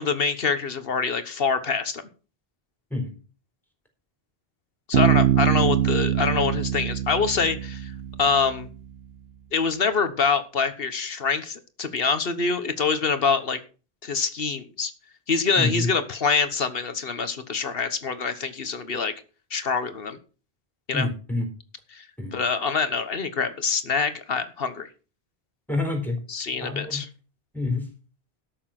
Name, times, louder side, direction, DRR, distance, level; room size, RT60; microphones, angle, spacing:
voice 1, 0.0-2.0 4.9-7.9 8.2-8.7 9.5-13.6 14.0-14.9 15.3-19.1 19.5-20.2 20.9-21.1 21.9-22.1 22.3-24.9 26.3-27.1, left 5 dB, 65° left, 11 dB, 1.4 m, -25 dB
Bass guitar, 4.9-8.7, right 10 dB, 75° right, 1.0 m, -23 dB
voice 2, 15.6-15.9 20.9-21.5 22.2-22.4 25.7-26.2 26.6-27.0 27.5-27.8, left 2 dB, ahead, 2 dB, 4.2 m, -27 dB
12.5 x 6.8 x 5.9 m, 0.37 s
omnidirectional pair, 1.1 m